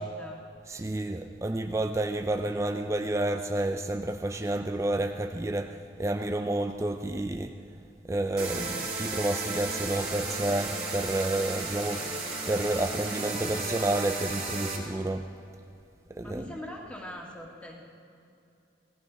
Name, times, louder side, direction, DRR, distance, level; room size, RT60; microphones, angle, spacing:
voice 1, 0.0-0.5 16.2-17.8, left 1 dB, 5° left, 1.9 m, -42 dB
voice 2, 0.7-7.6 8.0-12.2 12.5-15.3 16.1-16.5, right 1 dB, 15° right, 0.4 m, -30 dB
sound 1, 8.4-14.8, right 3 dB, 35° right, 2.8 m, -34 dB
18.5 x 14.5 x 5.1 m
head